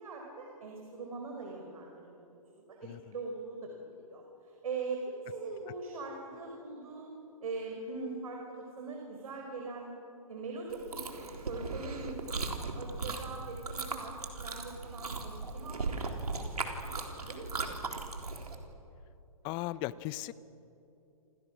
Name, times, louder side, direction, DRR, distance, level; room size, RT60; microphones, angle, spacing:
voice 1, 0.0-2.1 2.6-3.7 4.0-7.1 7.4-9.9 10.3-16.2 16.6-18.0 18.4-18.5, right 3 dB, 70° right, 1 dB, 5.3 m, -42 dB
Chewing mastication, 10.7-18.5, right 3 dB, 90° right, 3.7 m, -38 dB
voice 2, 19.4-20.3, left 16 dB, 25° left, 17 dB, 0.7 m, -37 dB
28.5 x 28.0 x 6.3 m, 2.8 s
hypercardioid pair, 140°, 19 cm